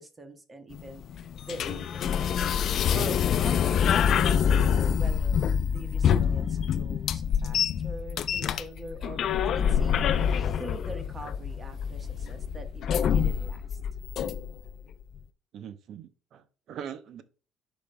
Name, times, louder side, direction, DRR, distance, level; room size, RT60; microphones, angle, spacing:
voice 1, 0.0-10.0 10.6-13.8, right 2 dB, 25° right, 1.2 m, -44 dB
sound 1, 0.7-14.7, left 8 dB, 50° left, 0.5 m, -26 dB
sound 2, 9.5-10.7, left 3 dB, 20° left, 1.9 m, -49 dB
voice 2, 15.5-17.2, right 8 dB, 60° right, 0.7 m, -42 dB
11.0 x 5.1 x 2.2 m
cardioid pair, 125°, 0 cm